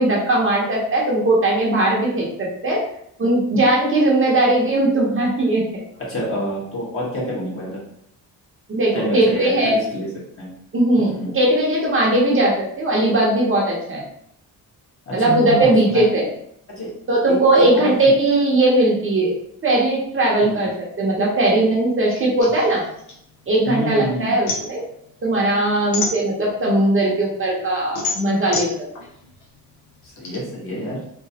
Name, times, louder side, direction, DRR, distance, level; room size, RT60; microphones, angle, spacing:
voice 1, 0.0-2.8 3.2-5.6 8.7-9.8 10.7-14.0 15.1-16.3 17.1-19.3 19.6-20.7 21.0-22.8 23.5-24.8 25.2-28.7, right 1 dB, 35° right, -3 dB, 0.8 m, -18 dB
voice 2, 6.1-7.8 8.9-10.1 10.4-10.5 11.0-11.3 15.1-16.1 16.7-16.9 17.3-18.1 20.4-20.6 23.6-24.4 30.0-31.0, equal, 35° left, -6 dB, 1.3 m, -27 dB
sound 1, 22.4-23.9 24.2-26.8 27.2-30.4, left 4 dB, 80° left, 0.9 m, -29 dB
3.2 x 3.0 x 2.8 m, 0.70 s
cardioid pair, 140°, 38 cm